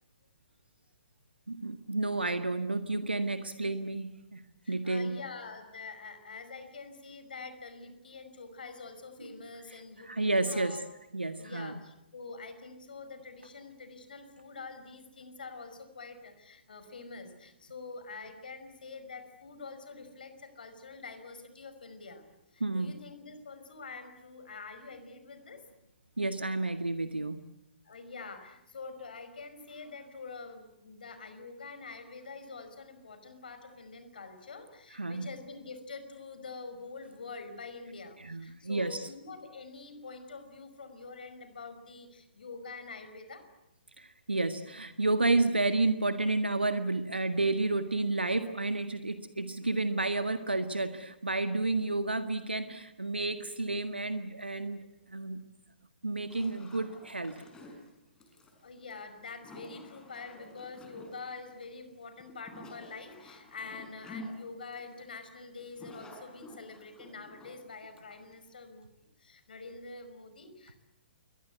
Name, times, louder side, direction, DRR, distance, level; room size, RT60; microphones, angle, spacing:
voice 1, 1.5-4.4 4.7-5.2 10.0-10.8 11.1-11.7 22.6-22.9 26.2-27.4 34.9-35.3 38.2-39.1 44.0-55.4 56.0-57.4, right 2 dB, 80° right, 10 dB, 1.7 m, -31 dB
voice 2, 4.6-10.8 11.4-22.3 22.5-25.6 27.8-43.4 58.6-70.8, left 4 dB, 60° left, 9 dB, 5.3 m, -46 dB
sound 1, 56.3-68.4, left 1 dB, 10° left, 5.7 m, -50 dB
29.0 x 23.5 x 8.4 m, 0.91 s
figure-of-eight pair, 125°, 6 cm